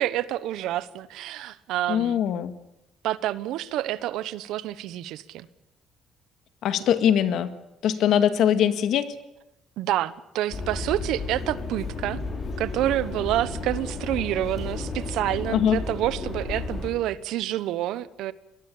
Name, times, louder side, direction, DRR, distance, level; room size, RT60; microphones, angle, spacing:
voice 1, 0.0-2.2 3.0-5.5 9.8-12.2 12.6-18.3, right 13 dB, 80° right, 17 dB, 1.0 m, -28 dB
voice 2, 1.9-2.5 6.6-7.5 7.8-9.1 15.5-15.8, left 9 dB, 60° left, 11 dB, 1.8 m, -22 dB
sound 1, 10.5-16.9, left 3 dB, 35° left, 5.6 m, -33 dB
24.0 x 20.0 x 8.6 m, 0.88 s
cardioid pair, 160°, 0 cm